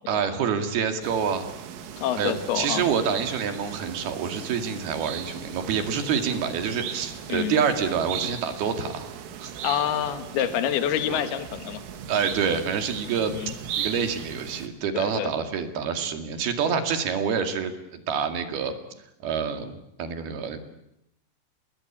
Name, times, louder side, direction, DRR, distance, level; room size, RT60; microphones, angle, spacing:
voice 1, 0.1-1.5 2.2-9.1 9.4-9.5 11.1-11.2 12.1-18.7 19.2-20.6, right 6 dB, 60° right, 7 dB, 3.8 m, -27 dB
sound 1, 1.0-14.7, right 8 dB, 80° right, 4.6 m, -37 dB
voice 2, 2.0-2.9 7.3-7.6 9.6-11.8 13.3-13.5 14.9-15.5, left 10 dB, 60° left, 9 dB, 3.2 m, -27 dB
29.5 x 20.5 x 8.7 m, 0.79 s
omnidirectional pair, 5.7 m